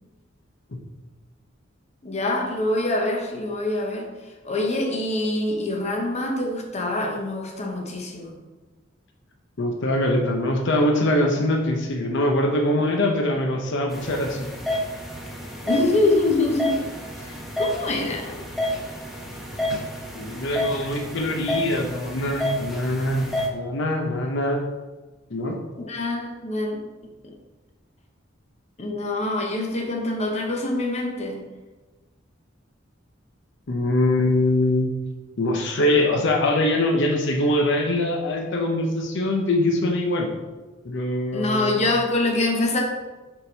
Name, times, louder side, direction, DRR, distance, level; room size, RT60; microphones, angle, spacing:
voice 1, 2.0-4.1 4.4-8.4 15.6-16.8 17.2-18.4 25.8-26.8 27.2-27.3 28.8-31.4 41.3-42.8, left 2 dB, 35° left, 1 dB, 0.9 m, -25 dB
voice 2, 9.6-14.5 19.7-19.8 20.1-24.6 25.3-25.6 33.7-34.9 35.4-40.3 40.8-41.8, left 1 dB, 65° left, 2 dB, 0.7 m, -23 dB
sound 1, 13.9-23.5, left 1 dB, ahead, 0.8 m, -30 dB
6.9 x 3.8 x 4.0 m, 1.2 s
head